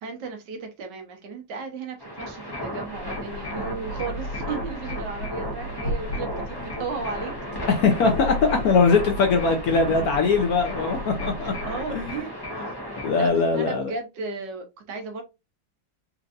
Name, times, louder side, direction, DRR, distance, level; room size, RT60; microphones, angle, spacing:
voice 1, 0.0-7.3 11.4-12.7 13.2-15.2, right 4 dB, 70° right, 1.4 m, -35 dB
sound 1, 2.0-13.3, left 1 dB, 20° left, 0.6 m, -35 dB
sound 2, 2.8-12.3, equal, 90° left, 1.9 m, -35 dB
voice 2, 7.7-11.5 11.9-12.0 13.0-13.9, left 4 dB, 65° left, 1.0 m, -21 dB
4.4 x 2.5 x 2.5 m
omnidirectional pair, 2.0 m